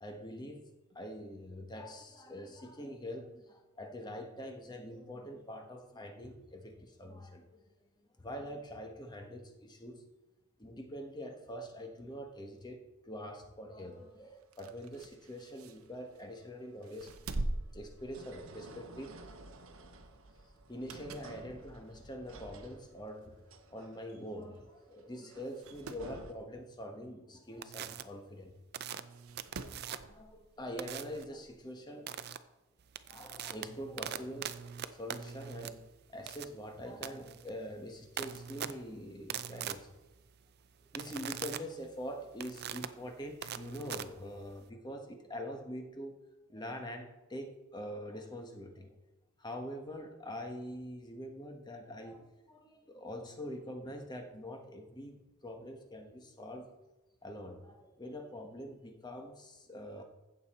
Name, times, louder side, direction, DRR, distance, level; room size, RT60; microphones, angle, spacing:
voice 1, 0.0-0.6 0.9-7.6 8.2-10.0 10.6-17.4 17.7-19.2 20.7-23.3 23.7-28.5 29.9-32.1 33.1-34.5 34.9-35.8 36.1-39.9 40.9-46.1 46.5-48.9 49.4-56.7 57.2-60.0, equal, 20° left, 4 dB, 1.2 m, -44 dB
sound 1, 13.8-26.3, right 1 dB, 70° right, 1.0 m, -54 dB
sound 2, 14.4-16.4 16.8-18.7 19.1-19.3 20.6-21.4 21.9-22.0 22.8-22.9 23.2-23.3 23.5-23.6 24.4-24.6 24.9-25.0 25.4-26.1 27.9-28.0 29.1-29.9 31.2-31.3, right 2 dB, 90° right, 0.8 m, -42 dB
sound 3, 27.6-28.0 28.7-30.2 30.8-31.2 32.1-32.4 32.8-44.7, right 9 dB, 50° right, 0.5 m, -42 dB
15.0 x 6.9 x 4.3 m, 1.1 s
head